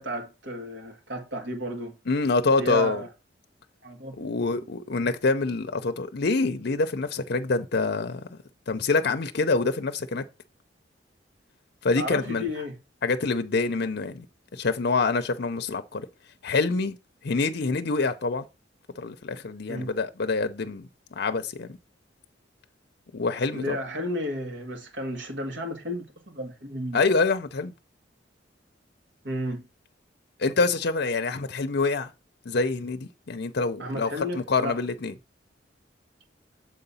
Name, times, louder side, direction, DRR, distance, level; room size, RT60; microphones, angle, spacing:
voice 1, 0.0-2.0 2.6-3.1 3.8-4.7 12.0-12.8 19.7-19.9 23.5-27.0 29.2-29.6 33.8-34.8, equal, 65° right, 1.8 m, -33 dB
voice 2, 2.1-3.0 4.2-8.4 8.7-10.2 11.8-12.4 13.0-14.2 14.5-16.1 16.4-17.0 17.2-18.4 19.0-20.9 21.2-21.7 23.1-23.8 26.9-27.7 30.4-32.1 32.5-35.1, left 3 dB, 60° left, 0.6 m, -26 dB
7.6 x 3.9 x 5.5 m
head